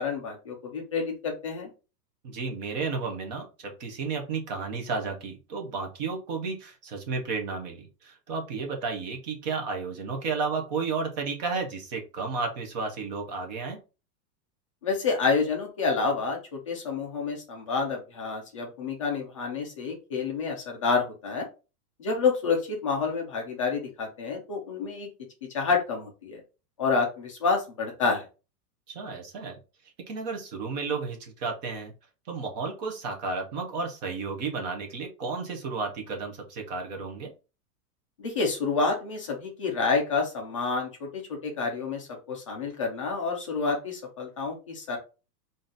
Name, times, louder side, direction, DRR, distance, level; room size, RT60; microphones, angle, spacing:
voice 1, 0.0-1.7 14.8-16.4 16.7-21.5 22.0-25.1 25.5-26.4 26.8-28.3 38.2-45.0, left 4 dB, 25° left, 0 dB, 0.4 m, -28 dB
voice 2, 2.2-13.8 28.9-29.6 30.1-31.9 32.3-37.3, right 4 dB, 30° right, 3 dB, 0.7 m, -32 dB
3.7 x 2.6 x 3.9 m, 0.31 s
supercardioid pair, 180°, 47 cm